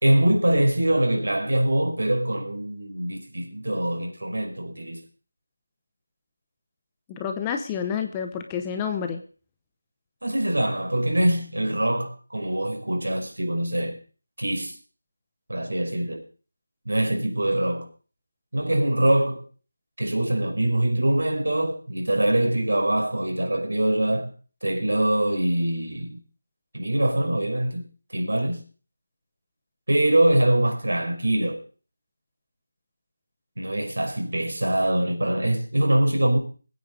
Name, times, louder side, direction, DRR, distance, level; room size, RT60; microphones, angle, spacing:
voice 1, 0.0-5.0 10.2-14.0 14.4-14.7 15.5-16.2 16.9-17.9 18.5-19.4 20.0-24.3 24.6-26.2 26.7-27.8 28.1-28.6 29.9-31.6 33.6-36.4, right 1 dB, 85° right, 5.4 m, -23 dB
voice 2, 7.1-9.2, left 7 dB, 10° left, 0.7 m, -29 dB
21.5 x 9.4 x 5.3 m
figure-of-eight pair, 180°, 0 cm